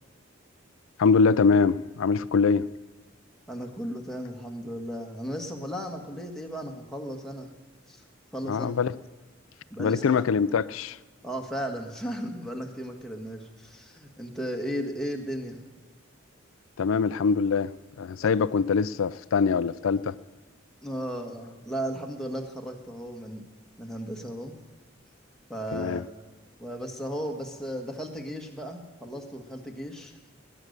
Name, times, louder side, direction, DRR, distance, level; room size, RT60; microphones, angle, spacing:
voice 1, 1.0-2.7 8.5-8.9 9.8-11.0 16.8-17.7 18.0-20.2 25.7-26.0, left 5 dB, 85° left, 0.4 m, -23 dB
voice 2, 3.5-7.5 7.9-8.0 8.3-8.8 9.7-10.2 11.2-15.6 18.2-18.3 20.8-23.4 23.8-24.5 25.5-26.0 26.6-30.1, equal, 5° left, 1.5 m, -35 dB
19.5 x 9.7 x 6.6 m
head